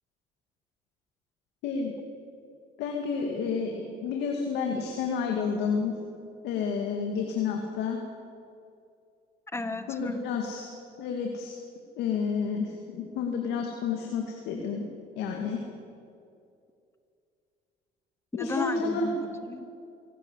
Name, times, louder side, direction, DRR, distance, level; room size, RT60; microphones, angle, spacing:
voice 1, 2.8-5.9 6.4-8.0 9.9-10.7 11.0-11.5 12.0-14.9 15.2-15.6 18.3-19.1, left 5 dB, 85° left, 2 dB, 2.4 m, -30 dB
voice 2, 9.5-10.3 18.3-19.7, left 2 dB, 15° left, 10 dB, 1.5 m, -34 dB
23.5 x 17.5 x 8.3 m, 2.5 s
cardioid pair, 110°, 17 cm